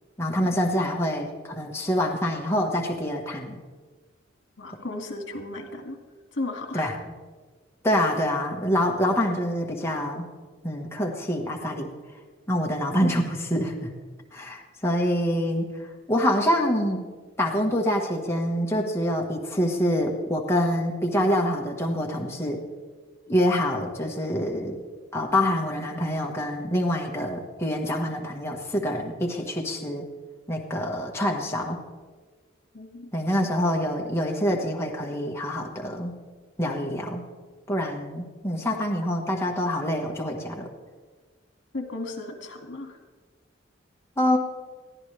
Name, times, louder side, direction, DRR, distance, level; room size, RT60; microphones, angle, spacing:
voice 1, 0.2-3.6 6.7-6.9 7.8-10.3 10.6-11.9 12.5-13.9 14.3-15.7 16.1-17.1 17.4-22.6 23.3-24.8 25.1-30.1 30.5-31.8 33.1-36.1 36.6-37.2 37.7-40.7 44.2-44.4, equal, 15° left, -1 dB, 1.4 m, -26 dB
voice 2, 4.6-6.0 6.3-6.9 32.7-33.1 41.7-43.0, left 2 dB, 70° left, 3 dB, 2.2 m, -35 dB
22.0 x 14.5 x 3.4 m, 1.4 s
head